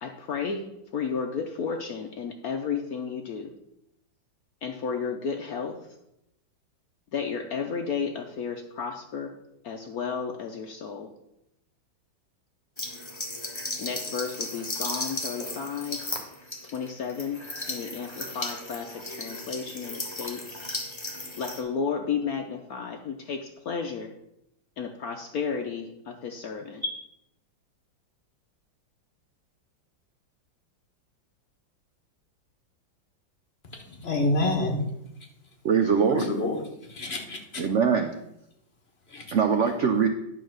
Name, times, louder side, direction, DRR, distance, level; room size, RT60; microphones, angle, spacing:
voice 1, 0.0-0.6 0.9-3.5 4.6-5.8 7.1-9.3 9.6-11.1 13.8-16.0 16.7-17.4 17.7-20.6 21.4-24.1 24.8-26.8, left 6 dB, 60° left, 4 dB, 1.0 m, -32 dB
sound 1, 12.8-21.6, left 2 dB, 15° left, 1.1 m, -35 dB
voice 2, 34.0-34.8 36.1-36.6 36.9-37.6 39.1-39.2, left 2 dB, 35° left, 2 dB, 1.4 m, -27 dB
voice 3, 35.6-36.3 37.6-38.1 39.3-40.1, right 6 dB, 85° right, 6 dB, 0.6 m, -22 dB
10.5 x 4.5 x 6.4 m, 0.82 s
omnidirectional pair, 2.1 m